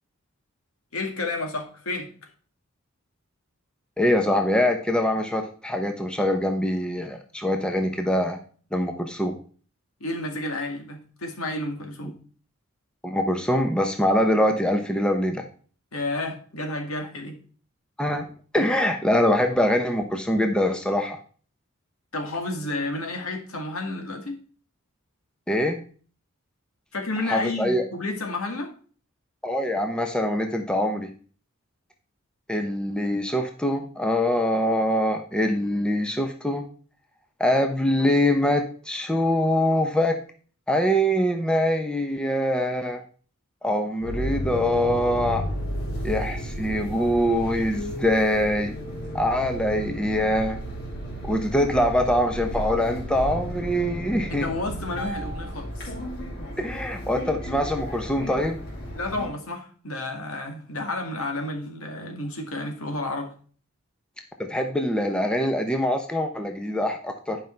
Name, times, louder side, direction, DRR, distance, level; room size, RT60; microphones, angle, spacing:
voice 1, 0.9-2.1 10.0-12.2 15.9-17.4 22.1-24.4 26.9-28.7 54.3-55.9 58.9-63.3, left 2 dB, 75° left, 3 dB, 2.0 m, -31 dB
voice 2, 4.0-8.4 8.7-9.4 13.0-15.4 18.0-18.3 18.5-21.2 25.5-25.8 27.2-27.8 29.4-31.1 32.5-36.6 37.4-40.2 40.7-43.0 43.6-45.4 46.0-48.7 49.1-50.6 51.2-54.5 56.6-58.6 64.4-67.4, left 1 dB, 5° left, 4 dB, 0.8 m, -24 dB
sound 1, 44.0-59.3, equal, 50° left, 2.6 m, -33 dB
10.0 x 5.4 x 4.4 m, 0.42 s
head